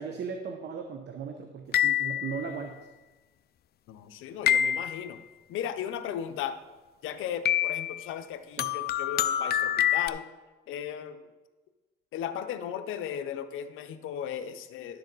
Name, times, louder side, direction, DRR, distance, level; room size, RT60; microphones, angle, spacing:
voice 1, 0.0-2.8 8.6-8.7, right 6 dB, 60° right, 5 dB, 0.9 m, -37 dB
sound 1, 1.7-2.5 4.5-5.2 7.5-8.1 8.6-10.1, left 10 dB, 55° left, 0.4 m, -26 dB
voice 2, 3.9-5.2 5.5-6.6 7.0-10.2 10.7-11.2 12.1-15.0, left 9 dB, 90° left, 9 dB, 0.7 m, -36 dB
11.5 x 6.9 x 4.0 m, 1.2 s
cardioid pair, 90°, 20 cm